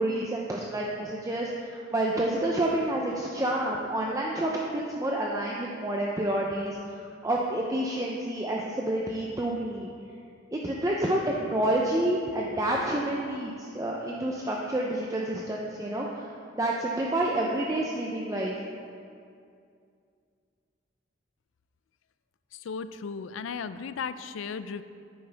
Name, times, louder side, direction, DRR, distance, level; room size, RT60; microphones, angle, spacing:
voice 1, 0.0-6.8 7.2-9.9 10.5-16.3 16.5-18.5, right 1 dB, 15° right, -2 dB, 0.5 m, -29 dB
voice 2, 22.6-24.8, left 6 dB, 85° left, 12 dB, 0.4 m, -35 dB
9.5 x 9.1 x 3.4 m, 2.4 s
head